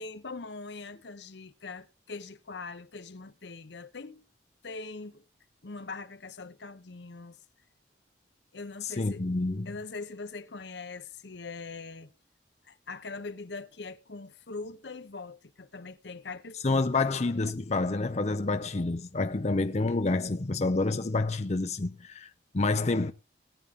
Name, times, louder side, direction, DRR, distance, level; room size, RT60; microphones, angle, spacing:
voice 1, 0.0-4.2 4.6-5.2 5.6-7.4 8.5-9.3 9.6-12.1 12.6-17.1, left 3 dB, 70° left, 0.9 m, -42 dB
voice 2, 8.8-9.7 16.6-23.1, left 3 dB, 35° left, 0.6 m, -28 dB
19.0 x 9.1 x 3.6 m
head